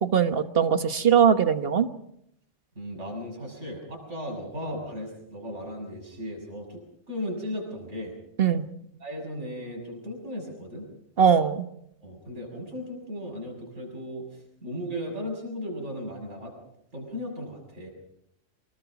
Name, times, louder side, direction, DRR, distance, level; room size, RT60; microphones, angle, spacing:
voice 1, 0.0-1.9 8.4-8.6 11.2-11.6, right 7 dB, 50° right, 10 dB, 1.4 m, -21 dB
voice 2, 2.8-6.8 7.1-8.1 9.0-10.9 12.0-16.5 16.9-17.9, equal, 65° right, 0 dB, 7.0 m, -36 dB
25.5 x 20.0 x 5.9 m, 0.75 s
omnidirectional pair, 1.3 m